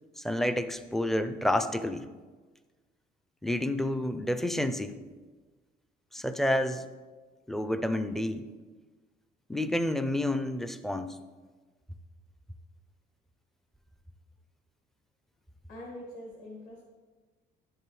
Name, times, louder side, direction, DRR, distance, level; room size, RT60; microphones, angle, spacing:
voice 1, 0.2-2.1 3.4-5.0 6.1-6.8 7.5-8.5 9.5-11.2, left 1 dB, ahead, 10 dB, 0.4 m, -29 dB
voice 2, 15.7-16.8, left 1 dB, 45° left, -3 dB, 1.8 m, -44 dB
10.5 x 7.9 x 3.2 m, 1.3 s
cardioid pair, 115°, 18 cm